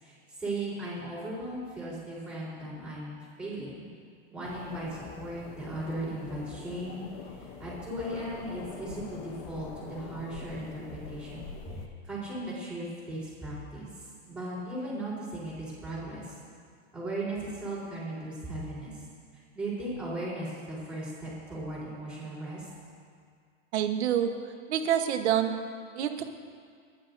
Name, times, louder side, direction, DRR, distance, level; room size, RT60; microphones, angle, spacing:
voice 1, 0.0-3.9 4.3-7.0 7.4-11.8 12.1-13.9 14.3-16.3 16.9-18.9 19.5-22.7, right 1 dB, 5° right, -8 dB, 4.0 m, -37 dB
sound 1, 4.4-11.9, left 5 dB, 25° left, 0.9 m, -44 dB
voice 2, 23.7-24.3 24.7-25.5 25.9-26.2, right 10 dB, 70° right, 6 dB, 1.3 m, -26 dB
29.5 x 11.0 x 2.7 m, 2.1 s
supercardioid pair, 165°, 35 cm